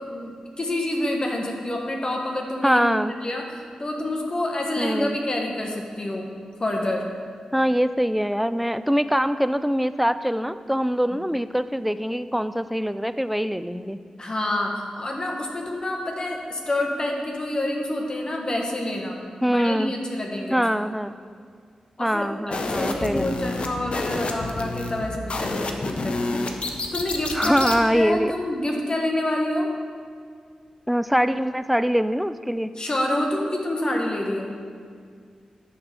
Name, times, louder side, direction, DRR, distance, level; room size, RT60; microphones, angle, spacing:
voice 1, 0.0-2.8 3.2-6.3 6.6-7.0 11.1-11.2 14.2-19.2 19.5-20.6 22.0-26.5 26.9-29.7 32.8-34.5, left 1 dB, 40° left, 0 dB, 1.5 m, -28 dB
voice 2, 2.6-3.1 4.8-5.2 7.5-14.0 19.4-19.9 20.5-21.2 22.0-23.2 27.3-28.3 30.9-32.7, equal, ahead, 13 dB, 0.4 m, -23 dB
sound 1, 22.5-27.8, left 2 dB, 60° left, 0.8 m, -29 dB
10.0 x 4.0 x 7.0 m, 2.1 s
cardioid pair, 55°, 2 cm